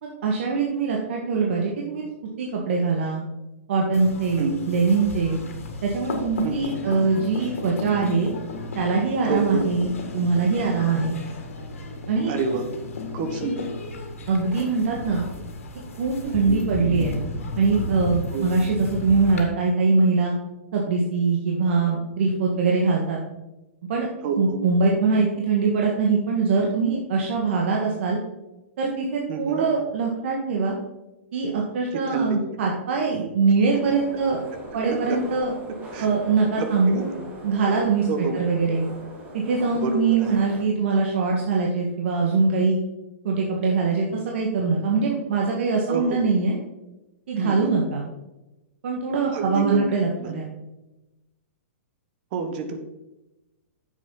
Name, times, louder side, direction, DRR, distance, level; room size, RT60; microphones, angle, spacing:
voice 1, 0.0-2.0 2.4-3.2 3.7-5.4 5.8-8.3 8.7-11.2 12.1-12.3 14.3-15.2 16.0-17.2 17.6-20.3 20.7-23.2 23.9-24.1 24.4-28.2 28.8-30.7 31.3-34.4 34.7-35.5 36.0-37.1 37.4-38.8 39.3-42.8 43.2-46.6 47.3-48.0 48.8-50.5, right 4 dB, 60° right, -1 dB, 1.6 m, -23 dB
sound 1, 3.9-19.4, left 3 dB, 90° left, 2.0 m, -34 dB
voice 2, 6.4-6.8 9.3-9.6 12.3-12.6 13.1-13.7 16.2-16.6 18.3-18.5 24.2-24.6 29.3-29.6 31.9-32.4 34.9-35.2 35.9-36.1 36.6-37.1 38.1-38.4 39.7-40.3 45.9-46.2 47.4-47.7 49.3-50.3 52.3-52.8, right 4 dB, 45° right, 7 dB, 1.3 m, -28 dB
sound 2, 33.7-40.6, right 2 dB, 20° right, 1.8 m, -41 dB
9.2 x 7.3 x 4.0 m, 0.99 s
hypercardioid pair, 150°, 7 cm